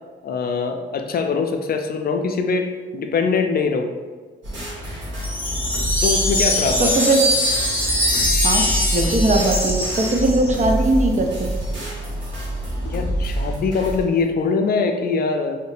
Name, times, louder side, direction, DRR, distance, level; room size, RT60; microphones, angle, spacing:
voice 1, 0.2-3.9 6.0-7.0 12.8-15.6, left 4 dB, 50° left, 5 dB, 0.4 m, -22 dB
sound 1, 4.4-14.0, equal, 65° right, 1.3 m, -27 dB
Wind chime, 5.2-10.6, left 1 dB, 10° left, 0.7 m, -22 dB
voice 2, 8.9-11.5, right 2 dB, 35° right, 3 dB, 0.5 m, -19 dB
3.2 x 2.8 x 3.1 m, 1.4 s
supercardioid pair, 65°, 21 cm